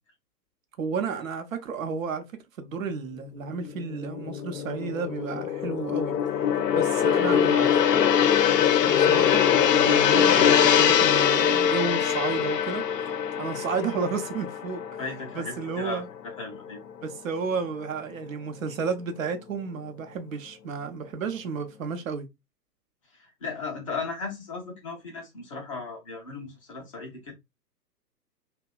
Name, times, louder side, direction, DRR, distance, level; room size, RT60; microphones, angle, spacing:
voice 1, 0.8-2.2 2.6-6.1 6.7-8.0 8.9-12.8 13.4-14.8 15.3-16.1 17.0-22.3, right 5 dB, 55° right, 0.7 m, -32 dB
Gong, 3.5-16.0 16.3-16.6, left 8 dB, 75° left, 0.5 m, -23 dB
voice 2, 15.0-16.8 23.1-27.3, left 4 dB, 20° left, 0.5 m, -36 dB
2.8 x 2.1 x 2.3 m
figure-of-eight pair, 120°, 49 cm